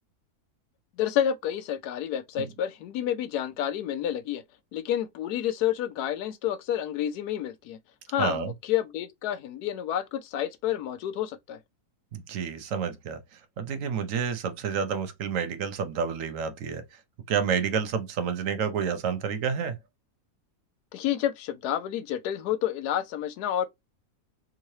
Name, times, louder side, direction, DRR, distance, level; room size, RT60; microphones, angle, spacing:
voice 1, 1.0-4.4 4.7-7.8 8.1-11.6 20.9-23.7, left 10 dB, 80° left, 1.1 m, -29 dB
voice 2, 8.2-8.5 12.1-13.2 13.6-16.8 17.3-19.8, right 6 dB, 65° right, 1.0 m, -29 dB
3.6 x 3.1 x 2.7 m
omnidirectional pair, 1.7 m